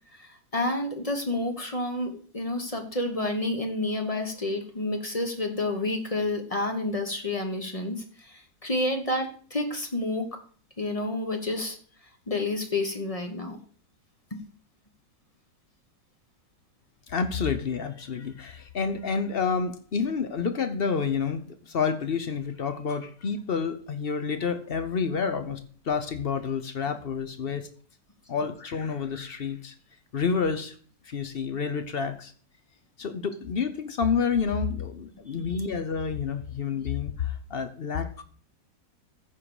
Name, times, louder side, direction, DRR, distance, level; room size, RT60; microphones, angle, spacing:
voice 1, 0.1-10.3 10.8-11.8 12.3-13.6 14.3-14.4 35.3-35.4, left 2 dB, 25° left, 5 dB, 1.0 m, -29 dB
voice 2, 17.1-25.6 25.8-27.7 28.3-29.7 30.1-30.8 31.0-32.3 33.0-38.2, left 6 dB, 50° left, 10 dB, 0.7 m, -29 dB
14.5 x 4.8 x 4.9 m, 0.44 s
omnidirectional pair, 1.9 m